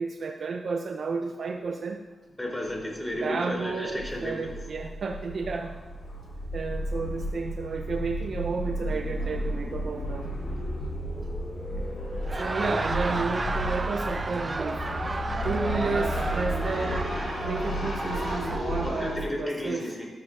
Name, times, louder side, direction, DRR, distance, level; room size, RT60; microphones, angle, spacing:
voice 1, 0.0-2.0 3.2-5.7 6.5-10.3 12.4-14.9 15.4-19.9, right 4 dB, 60° right, 3 dB, 0.7 m, -32 dB
voice 2, 2.4-4.5 18.8-20.1, left 1 dB, 15° left, -2 dB, 3.6 m, -33 dB
sound 1, 2.7-2.8 3.1-3.2 3.5-19.2, equal, 65° left, 4.0 m, -33 dB
sound 2, 7.8-17.0, equal, ahead, 2.5 m, -39 dB
Laughter, 12.1-19.0, right 3 dB, 30° right, 0.4 m, -33 dB
13.5 x 13.0 x 2.6 m, 1.3 s
cardioid pair, 80°, 0 cm